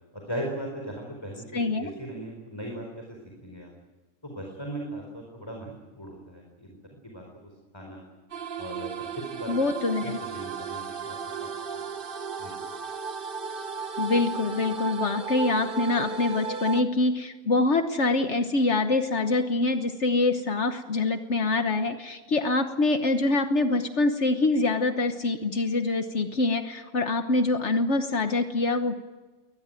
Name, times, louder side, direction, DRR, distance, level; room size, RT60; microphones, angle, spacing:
voice 1, 0.1-3.7 4.2-6.8 7.0-7.3 7.7-8.0 8.6-8.9 9.3-9.7 10.0-11.5 11.7-11.8 12.4-12.5, right 1 dB, 20° left, 0 dB, 4.6 m, -38 dB
voice 2, 1.5-1.9 9.5-10.2 14.0-28.9, left 3 dB, 65° left, 7 dB, 1.5 m, -25 dB
sound 1, 8.3-16.8, right 5 dB, 45° right, 1.4 m, -34 dB
22.5 x 20.0 x 9.0 m, 1.2 s
omnidirectional pair, 1.3 m